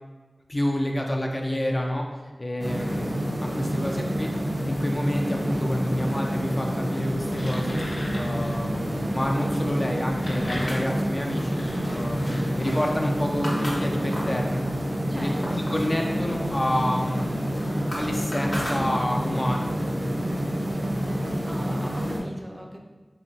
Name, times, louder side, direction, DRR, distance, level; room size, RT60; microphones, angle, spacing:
voice 1, 0.5-2.0 2.4-4.3 4.6-7.8 8.1-11.6 11.9-14.7 15.1-17.2 17.9-20.1, left 1 dB, 40° left, 0 dB, 0.5 m, -29 dB
sound 1, 2.6-22.2, equal, 80° right, 0.9 m, -28 dB
voice 2, 3.7-4.1 15.1-15.7 21.1-22.8, equal, 15° right, 1 dB, 0.5 m, -40 dB
sound 2, 7.1-8.7 9.9-13.0, left 1 dB, 90° left, 0.5 m, -38 dB
sound 3, 10.6-14.4 14.9-15.9 16.3-19.3, equal, 55° left, 1.0 m, -37 dB
3.6 x 3.2 x 2.7 m, 1.4 s
wide cardioid pair, 40°, 0 cm